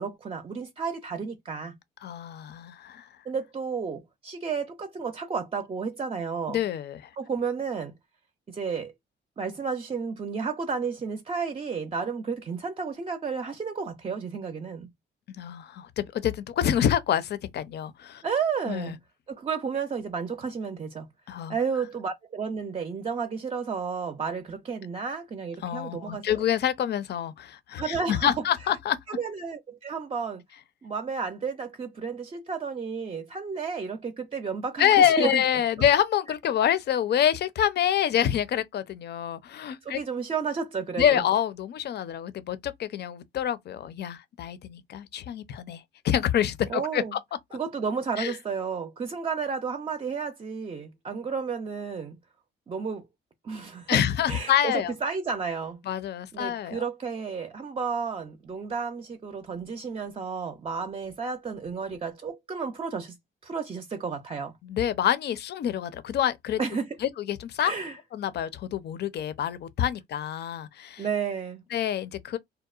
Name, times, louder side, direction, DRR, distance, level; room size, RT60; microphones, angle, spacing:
voice 1, 0.0-1.8 3.3-6.6 7.2-8.0 8.5-8.9 9.4-14.9 18.2-19.0 19.3-21.1 21.5-26.4 27.8-28.3 29.1-30.4 30.8-35.4 39.8-41.2 46.7-47.2 47.5-52.2 52.7-53.1 53.4-55.8 56.3-63.2 63.4-64.5 66.6-67.0 67.6-68.0 71.0-71.6, right 5 dB, 30° right, 0.5 m, -32 dB
voice 2, 2.0-3.0 6.5-7.0 15.3-18.2 18.7-18.9 21.3-21.6 25.6-29.0 34.8-40.0 41.0-47.2 48.2-48.3 53.9-54.9 55.9-56.9 64.6-66.6 67.0-67.7 68.1-71.0 71.7-72.4, left 10 dB, 55° left, 0.5 m, -26 dB
2.7 x 2.0 x 2.3 m
cardioid pair, 90°, 20 cm